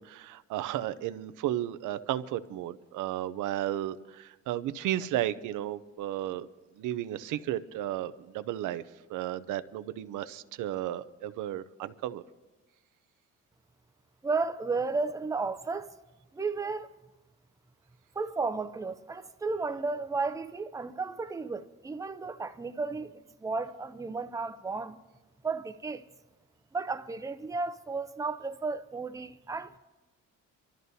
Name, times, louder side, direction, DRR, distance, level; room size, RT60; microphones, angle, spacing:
voice 1, 0.0-6.5 6.8-8.8 9.1-12.2, right 13 dB, 85° right, 0.6 m, -34 dB
voice 2, 14.2-15.9 16.3-16.9 18.2-25.0 25.4-26.0 26.7-29.8, right 4 dB, 10° right, 0.5 m, -33 dB
29.0 x 13.0 x 2.7 m
cardioid pair, 90°, 30 cm